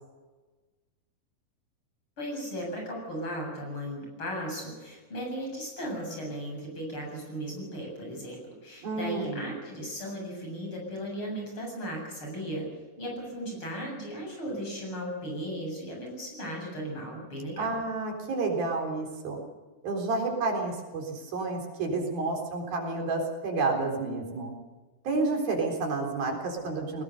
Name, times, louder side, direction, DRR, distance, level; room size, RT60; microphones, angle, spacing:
voice 1, 2.2-12.7 13.0-17.8, equal, 35° left, 0 dB, 8.5 m, -36 dB
voice 2, 8.8-9.5 17.6-19.4 19.8-24.5 25.0-27.0, right 3 dB, 85° right, 1 dB, 5.7 m, -30 dB
21.5 x 20.0 x 6.7 m, 1.3 s
omnidirectional pair, 4.1 m